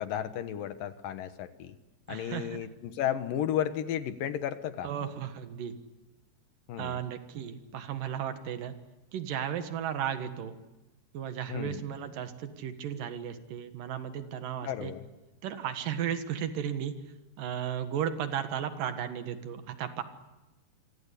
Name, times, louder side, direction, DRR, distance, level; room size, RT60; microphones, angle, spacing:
voice 1, 0.0-1.8 2.1-4.9 6.7-7.0 11.5-11.8 14.6-15.0, left 10 dB, 65° left, 10 dB, 2.6 m, -33 dB
voice 2, 2.1-2.6 4.8-5.8 6.8-8.8 9.1-10.6 11.1-14.9 15.4-16.9 17.4-20.0, right 9 dB, 60° right, 9 dB, 3.0 m, -35 dB
27.5 x 24.5 x 8.4 m, 1.1 s
omnidirectional pair, 4.8 m